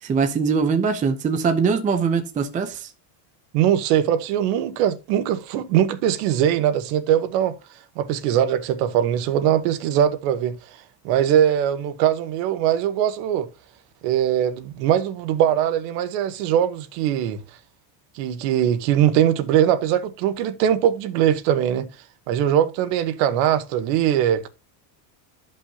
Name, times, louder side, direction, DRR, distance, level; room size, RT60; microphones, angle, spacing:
voice 1, 0.0-2.9, right 5 dB, 15° right, 0.6 m, -22 dB
voice 2, 3.5-7.6 8.0-10.5 11.0-13.5 14.0-17.4 18.1-21.9 22.3-24.5, right 10 dB, 80° right, 1.3 m, -21 dB
13.0 x 5.4 x 2.8 m
cardioid pair, 160°, 47 cm